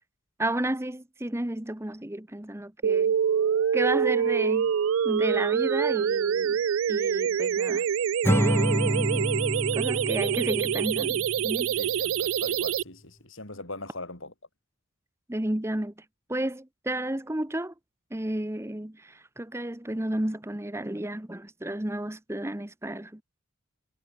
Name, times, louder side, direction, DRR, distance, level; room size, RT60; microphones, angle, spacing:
voice 1, 0.4-3.1 3.7-4.7 5.0-6.6 6.9-7.8 8.9-9.4 9.7-11.7 15.3-15.9 16.3-17.7 18.1-23.2, right 1 dB, 10° right, 0.9 m, -32 dB
sound 1, 2.8-12.8, right 8 dB, 70° right, 0.3 m, -25 dB
Acoustic guitar / Strum, 8.2-11.6, equal, 10° left, 1.2 m, -28 dB
voice 2, 11.8-14.3, left 2 dB, 65° left, 6.3 m, -40 dB
head